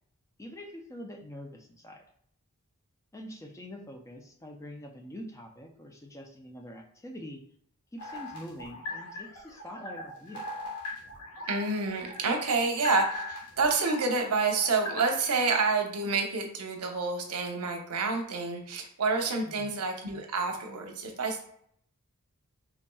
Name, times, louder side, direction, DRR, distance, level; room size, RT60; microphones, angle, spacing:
voice 1, 0.4-2.0 3.1-7.4 7.9-10.5 19.4-19.7, equal, 15° left, 3 dB, 0.4 m, -45 dB
sound 1, 8.0-15.4, left 2 dB, 85° left, 1.3 m, -40 dB
voice 2, 11.5-21.4, right 4 dB, 85° right, 3 dB, 0.7 m, -28 dB
4.1 x 3.5 x 2.3 m, 0.65 s
head